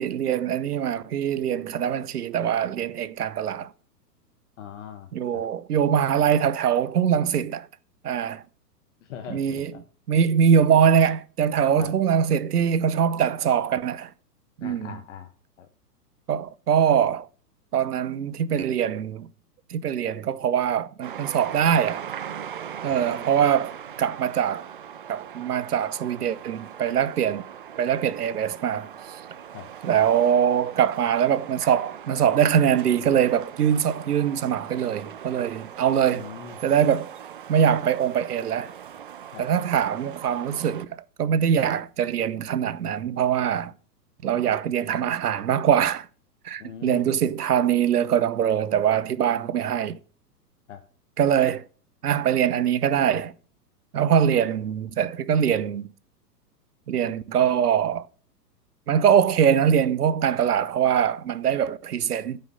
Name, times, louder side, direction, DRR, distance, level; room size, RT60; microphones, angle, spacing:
voice 1, 0.0-3.7 5.1-7.7 8.0-8.4 9.3-9.7 10.1-14.1 14.6-15.0 16.3-17.3 17.7-19.3 19.7-22.1 22.8-23.7 24.0-24.7 25.1-27.4 27.8-28.9 29.8-36.3 36.6-37.1 37.5-38.7 39.4-43.7 44.2-46.1 46.4-50.0 51.2-51.6 52.0-53.3 53.9-55.9 56.9-58.1 58.9-62.4, right 8 dB, 65° right, 0.9 m, -23 dB
voice 2, 4.6-5.4 9.0-9.8 11.8-11.9 14.6-15.3 15.6-15.7 22.9-23.0 29.5-29.7 36.1-36.6 39.3-39.5 46.6-47.1 50.7-50.8, left 8 dB, 45° left, 1.3 m, -41 dB
sound 1, 21.0-40.9, right 9 dB, 35° right, 0.4 m, -40 dB
9.3 x 5.6 x 5.1 m
figure-of-eight pair, 115°, 49 cm